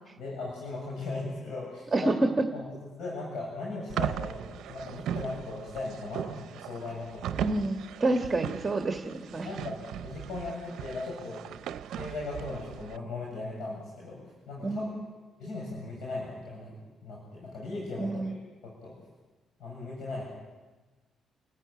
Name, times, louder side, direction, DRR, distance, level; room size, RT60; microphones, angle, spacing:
voice 1, 0.2-2.1 2.5-2.6 3.0-7.5 9.4-11.4 11.9-15.0 15.4-16.7 17.0-18.9 19.6-20.2, left 3 dB, 75° left, -3 dB, 7.8 m, -38 dB
sound 1, 3.9-13.0, right 10 dB, 75° right, 0.7 m, -38 dB
voice 2, 7.4-9.5 14.6-15.0 18.0-18.3, right 2 dB, 25° right, 4 dB, 1.9 m, -29 dB
29.0 x 14.5 x 9.5 m, 1.2 s
cardioid pair, 90°, 0 cm